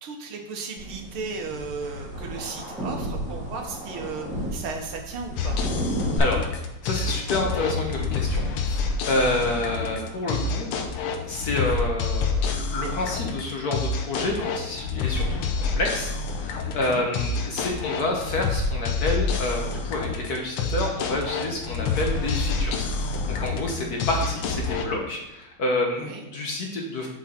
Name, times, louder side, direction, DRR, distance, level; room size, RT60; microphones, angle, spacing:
voice 1, 0.0-5.6 16.8-17.1 25.9-26.2, right 4 dB, 75° right, 3 dB, 1.9 m, -35 dB
sound 1, 0.8-6.2, right 1 dB, 5° right, 1.7 m, -33 dB
sound 2, 5.4-24.9, left 4 dB, 90° left, 1.7 m, -28 dB
voice 2, 6.8-10.7 11.2-27.1, left 2 dB, 55° left, 0 dB, 1.4 m, -28 dB
6.2 x 5.8 x 4.3 m, 0.99 s
omnidirectional pair, 2.4 m